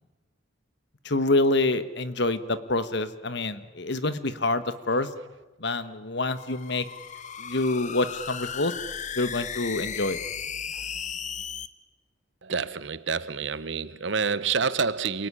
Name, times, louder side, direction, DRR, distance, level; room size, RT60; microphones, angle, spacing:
voice 1, 1.0-5.1 5.6-6.8 7.4-8.7 9.1-10.2, left 2 dB, 60° left, 1.4 m, -26 dB
sound 1, 6.2-11.7, left 7 dB, 40° left, 1.0 m, -36 dB
voice 2, 12.4-15.3, right 5 dB, 65° right, 1.0 m, -28 dB
28.0 x 19.0 x 9.9 m
head